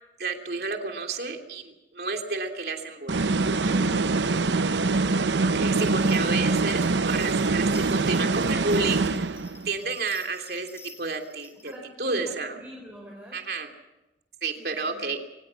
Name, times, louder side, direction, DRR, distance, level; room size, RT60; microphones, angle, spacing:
voice 1, 0.2-3.2 3.6-3.7 5.4-9.2 9.6-10.7 11.0-11.7 12.0-12.5 13.3-13.7 14.4-15.2, right 3 dB, 60° right, 4 dB, 3.2 m, -30 dB
sound 1, 3.1-9.7, right 3 dB, 85° right, 0.8 m, -24 dB
voice 2, 3.6-5.0 11.6-13.4 14.6-15.0, equal, 10° right, -1 dB, 4.8 m, -46 dB
sound 2, 5.8-11.8, left 4 dB, 15° left, 3.3 m, -51 dB
24.0 x 19.5 x 7.1 m, 0.98 s
head